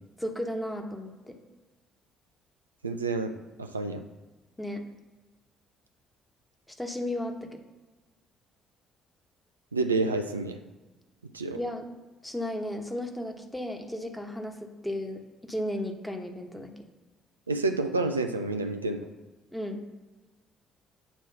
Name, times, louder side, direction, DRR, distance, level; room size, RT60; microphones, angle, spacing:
voice 1, 0.2-1.4 4.6-4.8 6.7-7.6 11.6-11.9 12.2-16.7 19.5-19.9, left 1 dB, 5° left, 4 dB, 1.1 m, -34 dB
voice 2, 2.8-3.3 3.6-4.0 9.7-10.6 11.3-11.6 17.5-19.0, right 3 dB, 90° right, 5 dB, 0.3 m, -28 dB
8.3 x 3.0 x 5.7 m, 1.2 s
figure-of-eight pair, 50°, 0 cm